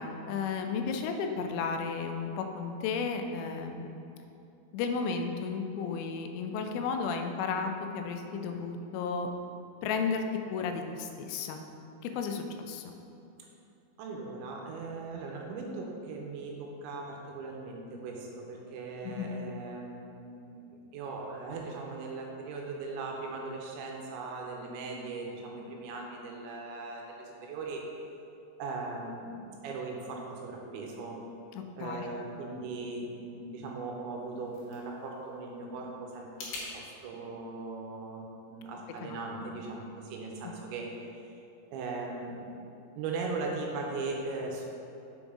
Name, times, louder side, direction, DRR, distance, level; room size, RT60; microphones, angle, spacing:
voice 1, 0.0-3.9 4.7-9.3 9.8-10.3 10.5-11.6 12.0-12.9 19.0-19.3 31.6-32.1 39.0-39.1, left 5 dB, 90° left, 5 dB, 3.1 m, -33 dB
voice 2, 14.0-20.6 20.9-27.8 28.6-31.2 31.8-41.0 41.7-42.5 43.0-44.7, right 3 dB, 85° right, 0 dB, 2.9 m, -39 dB
sound 1, 34.1-36.7, left 3 dB, 65° left, 2.7 m, -46 dB
6.8 x 5.2 x 3.6 m, 2.8 s
omnidirectional pair, 5.4 m